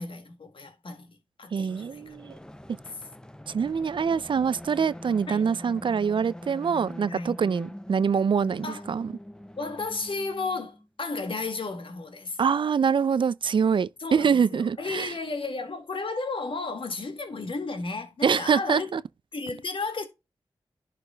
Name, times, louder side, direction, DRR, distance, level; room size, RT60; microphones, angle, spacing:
voice 1, 0.0-2.0 3.6-3.7 5.3-5.4 7.1-7.4 8.6-8.8 9.6-12.4 14.0-18.9 19.3-20.1, left 3 dB, 65° left, 1.9 m, -33 dB
voice 2, 1.5-2.3 3.5-9.1 12.4-15.1 18.2-19.0, right 6 dB, 60° right, 0.3 m, -25 dB
sound 1, 1.7-10.9, left 1 dB, 10° left, 0.7 m, -43 dB
11.0 x 5.0 x 2.2 m
cardioid pair, 45°, 10 cm